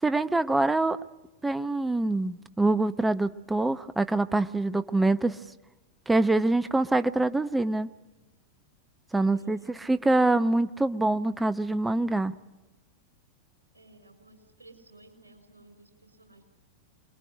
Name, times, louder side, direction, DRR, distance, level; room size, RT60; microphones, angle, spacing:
voice 1, 0.0-1.0 1.4-5.4 6.1-7.9 9.1-12.4, right 2 dB, 10° right, 12 dB, 0.9 m, -25 dB
voice 2, 9.3-10.0 13.7-16.4, right 2 dB, 80° right, 6 dB, 6.2 m, -55 dB
27.0 x 22.0 x 9.9 m, 1.1 s
figure-of-eight pair, 90°, 0 cm